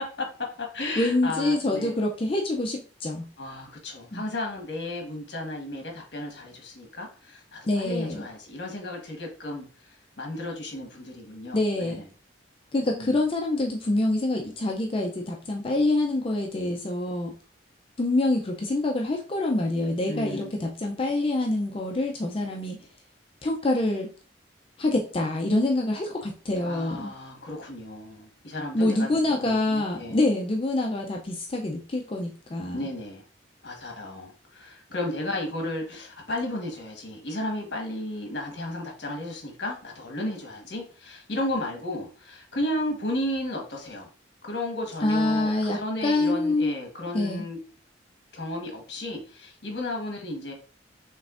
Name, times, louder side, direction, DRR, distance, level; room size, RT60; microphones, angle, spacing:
voice 1, 0.0-2.0 3.4-9.7 10.2-12.0 12.9-13.2 20.1-20.5 26.6-30.2 32.7-33.2 33.6-44.1 44.4-47.6 48.3-50.5, left 1 dB, 65° left, 1 dB, 1.3 m, -34 dB
voice 2, 1.0-3.2 4.1-4.2 7.7-8.2 11.5-12.0 12.7-17.3 18.0-22.9 23.4-24.1 24.8-27.1 28.7-32.9 45.0-46.7 47.1-47.4, left 2 dB, 30° left, 0 dB, 0.4 m, -26 dB
5.3 x 3.4 x 2.5 m, 0.39 s
head